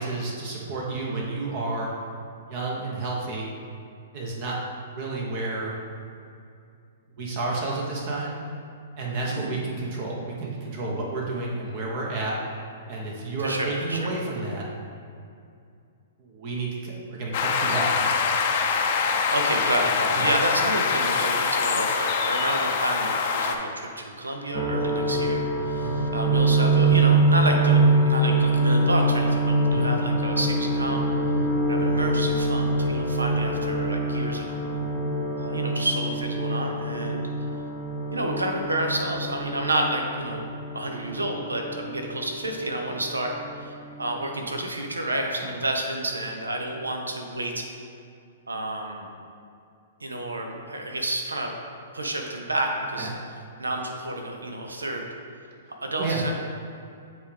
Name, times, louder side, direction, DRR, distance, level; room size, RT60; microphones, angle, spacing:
voice 1, 0.0-1.9 2.4-3.5 4.1-5.7 7.2-8.3 9.0-12.4 12.9-14.7 16.2-18.1 20.2-20.3 25.1-25.2 25.8-26.1 29.7-29.9 53.0-53.1 56.0-56.3, right 3 dB, 45° right, -2 dB, 1.0 m, -31 dB
voice 2, 13.4-14.1 18.9-31.0 31.7-34.5 35.4-37.2 38.1-43.7 44.0-47.6 48.5-49.1 50.0-51.5 51.9-53.1 53.6-55.1 55.7-56.3, right 1 dB, 90° right, 2 dB, 0.7 m, -30 dB
sound 1, 17.3-23.6, left 5 dB, 55° left, 0.5 m, -24 dB
sound 2, 24.5-43.1 43.3-44.3, right 2 dB, 25° right, 0.8 m, -24 dB
8.2 x 3.6 x 3.4 m, 2.4 s
hypercardioid pair, 115°, 0 cm